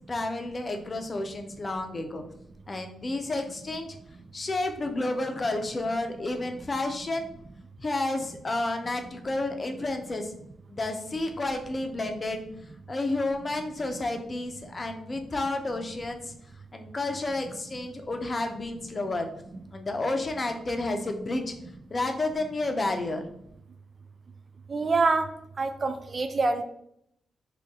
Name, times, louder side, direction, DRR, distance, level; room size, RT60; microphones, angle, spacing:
voice 1, 0.1-2.2 2.7-4.0 4.3-7.3 7.8-10.3 10.7-12.4 12.9-16.3 16.7-19.3 19.7-21.5 21.9-23.2, left 2 dB, 40° left, 5 dB, 0.6 m, -31 dB
voice 2, 24.7-25.3 25.6-26.6, right 3 dB, 45° right, 9 dB, 0.4 m, -25 dB
2.8 x 2.6 x 3.6 m, 0.74 s
hypercardioid pair, 40°, 0 cm